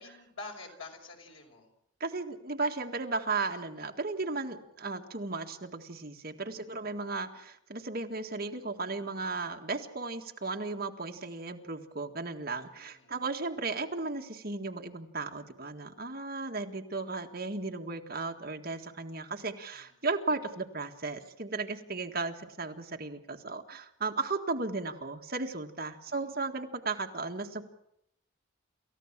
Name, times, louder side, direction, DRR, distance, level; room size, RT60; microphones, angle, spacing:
voice 1, 0.0-1.7 6.5-6.8 12.9-13.2 19.8-20.0 26.1-26.3, left 3 dB, 80° left, 2 dB, 5.7 m, -47 dB
voice 2, 2.0-27.6, right 3 dB, 45° right, 3 dB, 1.7 m, -35 dB
29.0 x 14.5 x 7.4 m, 0.76 s
head